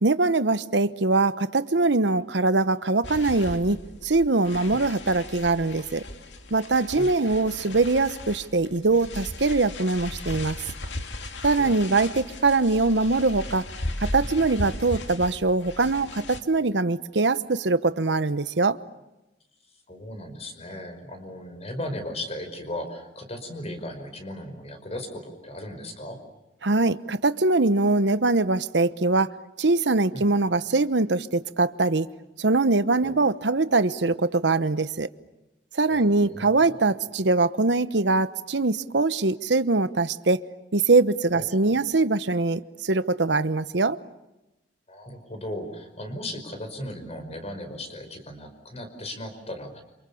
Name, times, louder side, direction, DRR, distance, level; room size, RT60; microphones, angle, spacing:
voice 1, 0.0-6.0 6.5-10.6 11.4-13.7 14.1-18.8 26.6-29.3 29.6-32.1 32.4-35.1 35.7-40.4 40.7-44.0, right 3 dB, 70° right, 1.0 m, -22 dB
sound 1, 3.0-16.4, left 2 dB, 80° left, 2.4 m, -37 dB
voice 2, 7.4-7.8 11.6-11.9 19.9-26.2 30.1-30.3 33.0-33.2 35.9-36.6 41.3-41.8 44.9-49.8, left 1 dB, 35° left, 5.3 m, -37 dB
29.0 x 27.0 x 7.0 m
head